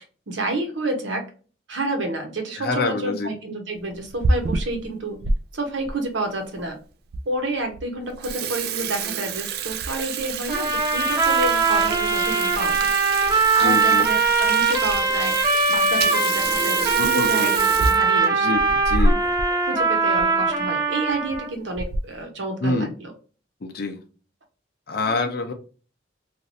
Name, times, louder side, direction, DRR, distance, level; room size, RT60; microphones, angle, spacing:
voice 1, 0.3-1.2 1.7-5.2 5.5-6.8 7.3-12.9 13.5-15.3 15.7-18.5 19.6-23.1, right 2 dB, 85° right, 1.0 m, -29 dB
voice 2, 2.6-3.3 13.6-14.1 17.0-17.5 18.3-19.2 22.6-22.9 23.6-24.0 24.9-25.5, left 3 dB, 55° left, 0.6 m, -26 dB
Water tap faucet / Sink (filling or washing), 3.9-5.4 5.9-6.0 6.7-6.8 7.1-7.2 7.6-7.8 8.1-19.5 19.8-19.9 20.2-20.3 21.1-21.4 21.8-22.2, right 3 dB, 55° right, 0.4 m, -27 dB
sound 1, 10.5-21.5, right 4 dB, 20° right, 0.8 m, -21 dB
3.0 x 2.5 x 2.6 m
head